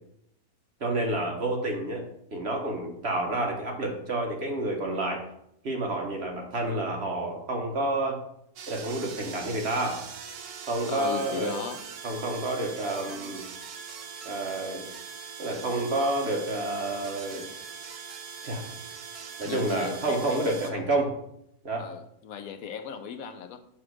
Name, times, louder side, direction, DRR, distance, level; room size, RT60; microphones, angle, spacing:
voice 1, 0.8-5.2 5.6-8.2 8.7-10.1 10.7-11.6 12.0-13.5 14.2-14.9 15.4-17.5 18.4-18.7 19.4-21.1 21.6-21.9, right 2 dB, 45° right, 2 dB, 1.0 m, -29 dB
sound 1, 8.6-20.7, right 6 dB, 70° right, 1.2 m, -42 dB
voice 2, 10.9-11.8 19.4-20.9 21.8-23.6, left 6 dB, 70° left, 7 dB, 0.9 m, -37 dB
7.0 x 3.3 x 6.0 m, 0.77 s
omnidirectional pair, 1.8 m